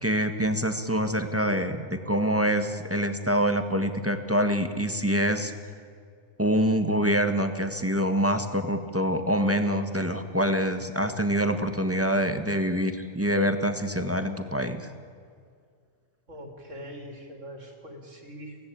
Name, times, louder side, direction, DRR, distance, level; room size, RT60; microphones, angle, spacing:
voice 1, 0.0-5.5 6.4-14.9, equal, 10° right, 8 dB, 1.4 m, -25 dB
voice 2, 16.3-18.6, equal, 60° right, 3 dB, 4.1 m, -42 dB
24.0 x 17.5 x 8.8 m, 2.2 s
omnidirectional pair, 1.4 m